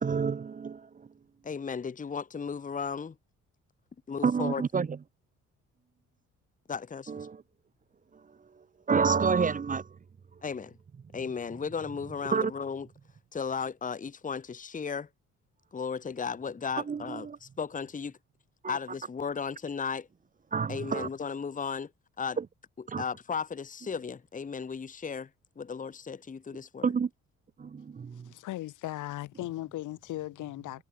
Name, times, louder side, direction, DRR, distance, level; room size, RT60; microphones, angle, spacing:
voice 1, 0.0-0.8 4.2-4.9 7.1-7.4 8.9-9.8 12.3-12.5 16.9-17.4 18.6-18.7 20.5-21.1 22.9-23.0 26.8-27.1 27.6-28.2, right 5 dB, 25° right, 0.6 m, -28 dB
voice 2, 1.4-3.1 4.1-4.6 6.7-7.1 10.4-10.8 11.1-12.9 13.3-15.1 15.7-18.1 18.7-20.1 20.7-21.9 22.2-22.4 23.0-25.3 25.6-26.9, left 6 dB, 25° left, 1.1 m, -35 dB
voice 3, 28.1-30.8, left 15 dB, 85° left, 3.6 m, -37 dB
cardioid pair, 90°, 30 cm